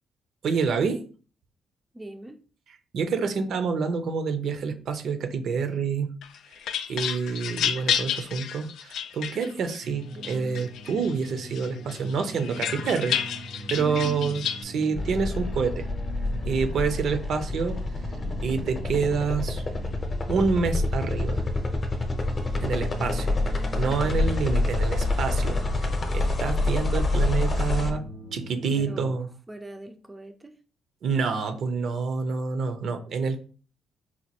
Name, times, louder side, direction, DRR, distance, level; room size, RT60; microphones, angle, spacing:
voice 1, 0.4-1.1 2.9-6.1 6.9-15.9 16.4-17.8 18.4-19.6 20.3-21.4 22.6-23.3 23.8-28.0 28.3-29.3 31.0-33.4, right 5 dB, 65° right, 8 dB, 0.6 m, -27 dB
voice 2, 1.9-2.4 9.3-9.7 13.8-14.3 28.8-29.2 29.5-30.6, right 1 dB, 15° right, 6 dB, 0.4 m, -40 dB
sound 1, 6.2-9.8 10.2-11.1 11.5-14.6, left 9 dB, 80° left, 0.3 m, -30 dB
sound 2, 9.8-29.1, equal, 85° right, 1.0 m, -42 dB
sound 3, 14.9-27.9, left 2 dB, 35° left, 0.7 m, -27 dB
4.2 x 2.2 x 2.9 m, 0.39 s
cardioid pair, 90°, 0 cm